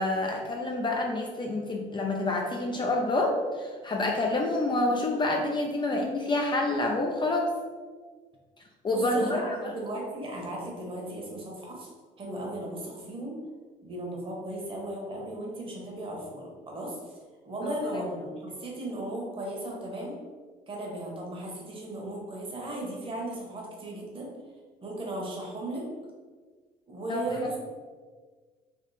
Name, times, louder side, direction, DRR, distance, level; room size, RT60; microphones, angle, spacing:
voice 1, 0.0-7.5 8.8-9.7 17.6-17.7 27.1-27.2, left 2 dB, 30° left, 1 dB, 0.4 m, -28 dB
voice 2, 8.9-11.9 12.2-13.3 13.8-17.0 17.4-20.2 20.7-24.3 24.8-25.8 26.9-27.6, right 1 dB, 30° right, -1 dB, 1.1 m, -36 dB
3.6 x 2.4 x 4.0 m, 1.5 s
cardioid pair, 110°, 17 cm